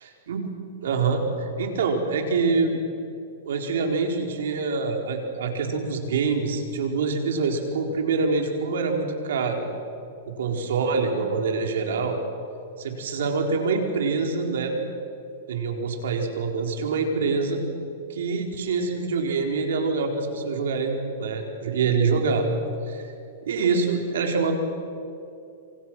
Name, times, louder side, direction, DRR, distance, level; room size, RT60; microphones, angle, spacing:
voice 1, 0.8-1.2 1.6-2.8 3.4-9.6 10.3-12.2 12.8-14.8 15.5-17.6 18.1-22.5 22.9-23.0 23.4-24.6, right 4 dB, 75° right, 3 dB, 4.4 m, -25 dB
27.0 x 27.0 x 6.3 m, 2.6 s
hypercardioid pair, 150°, 0 cm